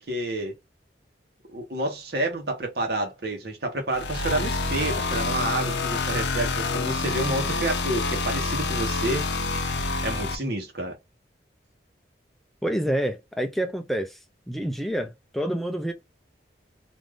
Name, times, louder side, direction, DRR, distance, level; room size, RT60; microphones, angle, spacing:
voice 1, 0.1-0.5 1.5-9.3 10.0-11.0, right 1 dB, 60° right, 1.0 m, -29 dB
sound 1, 3.9-10.4, left 3 dB, 70° left, 0.5 m, -27 dB
voice 2, 12.6-14.2 14.5-15.9, right 1 dB, ahead, 0.3 m, -28 dB
2.6 x 2.3 x 3.4 m
head